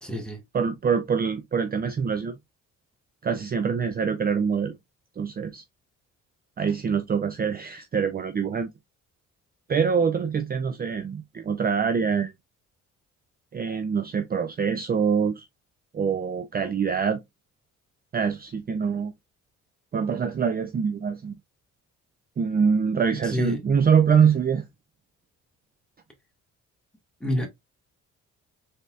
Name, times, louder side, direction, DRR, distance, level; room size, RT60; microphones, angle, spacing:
voice 1, 0.0-0.4 23.2-23.6 27.2-27.5, equal, 5° left, 1.5 m, -28 dB
voice 2, 0.5-2.4 3.2-4.8 5.2-5.6 6.6-8.7 9.7-12.3 13.5-15.5 15.9-17.2 18.1-19.1 19.9-21.3 22.4-24.7, right 6 dB, 30° right, 0.5 m, -24 dB
4.0 x 3.5 x 2.3 m
cardioid pair, 90°, 30 cm